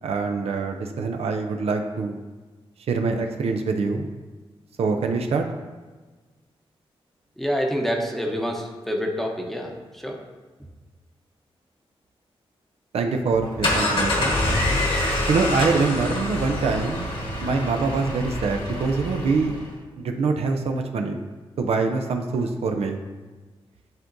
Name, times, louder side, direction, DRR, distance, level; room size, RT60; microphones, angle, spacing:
voice 1, 0.0-2.2 2.9-4.1 4.8-5.4 12.9-14.4 15.3-17.1 17.4-19.6 20.0-21.2 21.6-23.0, right 4 dB, 80° right, 4 dB, 0.6 m, -24 dB
voice 2, 7.4-10.2, equal, ahead, 1 dB, 0.8 m, -27 dB
sound 1, 13.3-19.7, left 1 dB, 55° left, 1.3 m, -26 dB
10.5 x 3.7 x 2.6 m, 1.3 s
wide cardioid pair, 120°, 10 cm